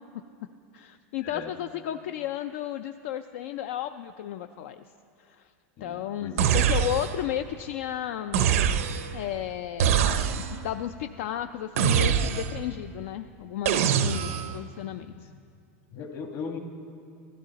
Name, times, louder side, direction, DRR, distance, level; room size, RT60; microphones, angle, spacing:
voice 1, 0.7-4.8 5.2-5.5 5.8-8.6 9.1-15.3, left 11 dB, 70° left, 9 dB, 0.4 m, -33 dB
voice 2, 5.8-6.5 15.9-16.6, left 5 dB, 45° left, 4 dB, 1.4 m, -37 dB
sound 1, 6.4-7.3 8.3-9.2 9.8-10.7 11.8-12.7 13.7-14.6, right 8 dB, 85° right, 0.6 m, -24 dB
15.0 x 12.5 x 4.0 m, 2.4 s
supercardioid pair, 145°, 7 cm